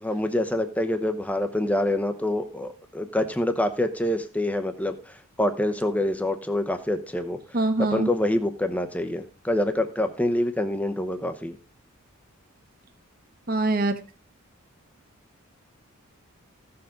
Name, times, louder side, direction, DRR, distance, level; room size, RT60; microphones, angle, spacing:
voice 1, 0.0-7.4 7.8-11.6, left 1 dB, 5° left, 7 dB, 0.8 m, -26 dB
voice 2, 7.5-8.1 13.5-14.0, right 2 dB, 45° right, 6 dB, 1.1 m, -23 dB
15.5 x 7.0 x 3.8 m, 0.35 s
head